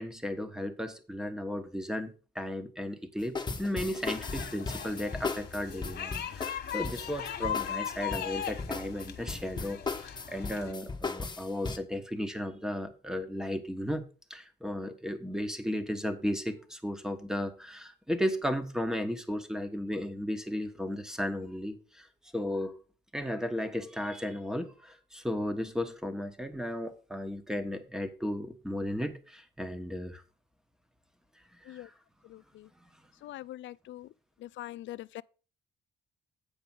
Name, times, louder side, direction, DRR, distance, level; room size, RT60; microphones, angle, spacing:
voice 1, 0.0-14.0 14.3-22.1 22.3-22.8 23.1-30.2 31.6-31.9, equal, 5° right, 1.3 m, -35 dB
sound 1, 3.2-11.8, left 4 dB, 20° left, 1.3 m, -37 dB
sound 2, 4.0-10.7, left 9 dB, 55° left, 1.4 m, -38 dB
voice 2, 32.2-32.7 33.2-34.1 34.4-35.2, left 15 dB, 70° left, 0.4 m, -43 dB
8.6 x 5.0 x 6.1 m
cardioid pair, 90°, 20 cm